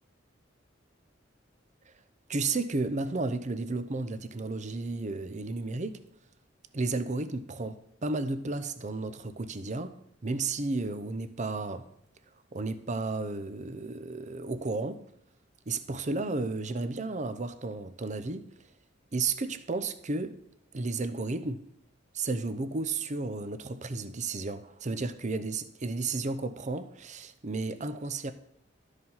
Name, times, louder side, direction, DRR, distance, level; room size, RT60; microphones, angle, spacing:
voice 1, 2.3-6.0 6.7-9.9 10.2-11.8 12.5-15.0 15.7-18.5 19.1-20.4 20.7-21.7 22.1-28.3, right 3 dB, 40° right, 0.7 m, -33 dB
12.5 x 5.0 x 5.6 m
head